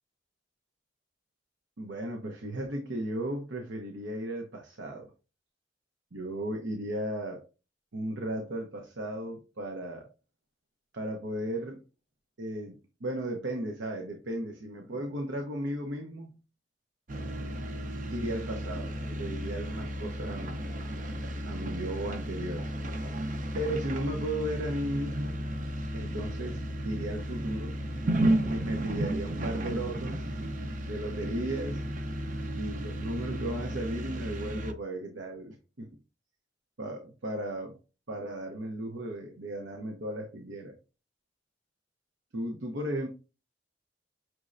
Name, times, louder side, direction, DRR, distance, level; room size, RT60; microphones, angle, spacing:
voice 1, 1.8-5.1 6.1-7.4 7.9-10.1 10.9-11.8 12.4-16.4 18.1-20.7 21.2-22.7 23.5-25.4 25.9-27.7 28.5-30.4 30.8-31.8 32.6-36.0 36.8-37.8 38.1-40.8 42.3-43.1, right 1 dB, 90° right, 2 dB, 0.8 m, -35 dB
sound 1, 17.1-34.7, right 1 dB, 45° right, 0.6 m, -33 dB
6.0 x 3.1 x 2.5 m, 0.32 s
head